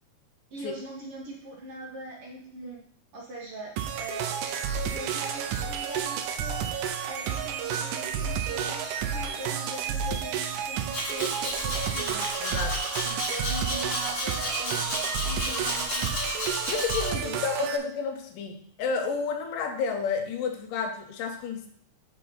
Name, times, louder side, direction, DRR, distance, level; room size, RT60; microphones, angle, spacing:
voice 1, 0.5-2.8 3.1-4.4 4.9-6.7 7.0-12.3 13.0-16.1 17.1-17.3, right 1 dB, 60° right, -3 dB, 1.7 m, -41 dB
sound 1, 3.8-17.8, right 7 dB, 80° right, 2.0 m, -31 dB
Domestic sounds home sounds, 10.9-17.1, left 1 dB, 35° left, 0.9 m, -32 dB
voice 2, 12.4-12.8 16.7-21.7, left 5 dB, 85° left, 5 dB, 2.5 m, -31 dB
6.3 x 4.8 x 5.4 m, 0.62 s
omnidirectional pair, 3.7 m